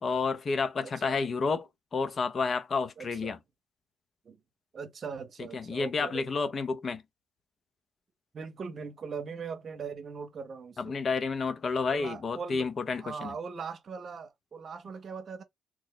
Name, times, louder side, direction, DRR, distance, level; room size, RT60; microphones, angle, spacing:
voice 1, 0.0-3.4 5.4-7.0 10.8-13.3, left 4 dB, 50° left, 0.6 m, -30 dB
voice 2, 3.0-3.4 4.2-4.4 4.7-6.5 8.3-10.9 11.9-12.7 12.9-15.4, right 5 dB, 55° right, 0.8 m, -40 dB
3.0 x 2.0 x 3.8 m
hypercardioid pair, 50°, 0 cm